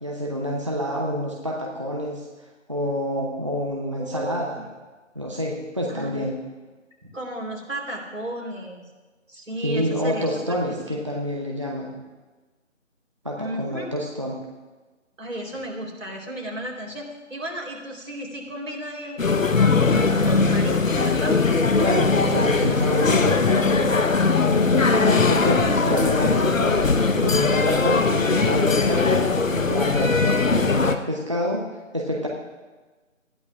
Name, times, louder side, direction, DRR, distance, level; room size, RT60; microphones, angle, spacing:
voice 1, 0.0-2.3 2.7-4.6 5.1-6.4 9.6-11.9 13.2-14.4 21.8-23.8 24.5-26.8 27.2-30.8 31.1-31.7 31.9-32.3, equal, 25° right, -1 dB, 0.7 m, -28 dB
voice 2, 4.0-4.6 5.9-6.3 7.1-8.8 9.3-11.0 13.4-13.9 15.2-21.4 25.0-25.5, right 1 dB, 75° right, -1 dB, 3.8 m, -34 dB
sound 1, 19.2-31.0, left 4 dB, 85° left, 1.1 m, -20 dB
19.0 x 12.5 x 2.4 m, 1.3 s
figure-of-eight pair, 165°, 39 cm